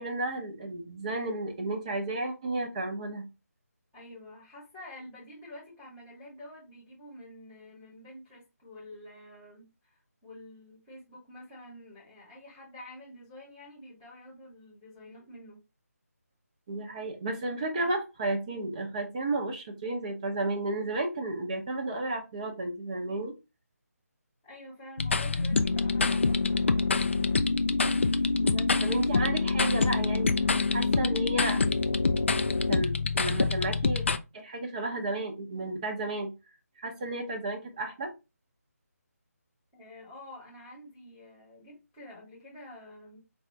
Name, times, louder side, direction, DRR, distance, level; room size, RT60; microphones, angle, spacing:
voice 1, 0.0-3.2 16.7-23.3 28.4-30.3 30.7-31.6 32.7-34.0 34.3-36.3 36.8-38.1, right 2 dB, 25° right, 2 dB, 0.8 m, -33 dB
voice 2, 3.9-15.6 24.4-26.6 39.7-43.2, left 1 dB, 5° left, -4 dB, 1.2 m, -48 dB
sound 1, 25.0-34.2, left 3 dB, 50° left, 0.4 m, -26 dB
5.1 x 2.4 x 3.3 m, 0.26 s
figure-of-eight pair, 155°, 9 cm